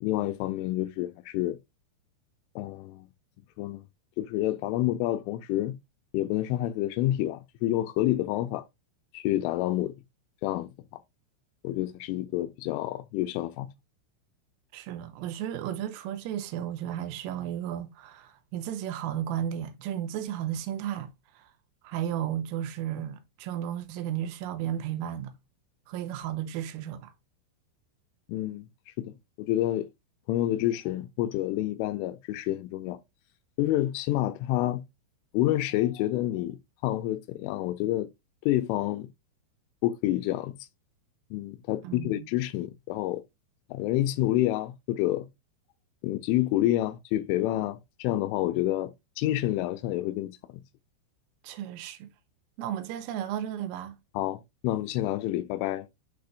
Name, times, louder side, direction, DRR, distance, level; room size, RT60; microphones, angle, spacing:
voice 1, 0.0-1.6 2.6-3.1 3.6-3.8 4.2-5.8 6.1-8.7 9.1-9.9 10.4-11.0 11.6-13.7 28.3-28.7 29.0-29.9 30.3-33.0 33.6-34.8 35.3-36.6 36.8-38.1 38.5-39.1 39.8-40.5 41.3-43.2 43.7-45.3 46.0-48.9 49.2-50.4 54.2-55.9, left 14 dB, 85° left, 3.0 m, -28 dB
voice 2, 14.7-21.5 21.8-25.3 25.9-27.1 41.8-42.3 51.4-52.1 52.6-54.0, right 10 dB, 90° right, 3.4 m, -34 dB
9.6 x 4.3 x 2.5 m
omnidirectional pair, 5.8 m